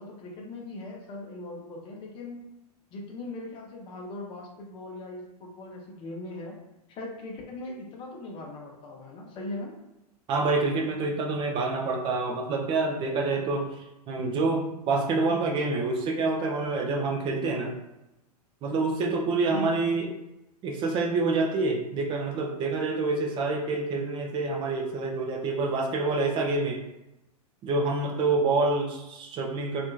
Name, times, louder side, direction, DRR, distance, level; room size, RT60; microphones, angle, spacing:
voice 1, 0.0-2.4 2.9-6.5 6.9-9.7 19.5-19.8, left 2 dB, 25° left, -1 dB, 0.6 m, -39 dB
voice 2, 10.3-13.7 14.1-17.7 18.6-20.1 20.6-26.8 27.6-29.9, right 3 dB, 25° right, 2 dB, 0.4 m, -27 dB
2.7 x 2.5 x 2.4 m, 0.93 s
figure-of-eight pair, 100°, 21 cm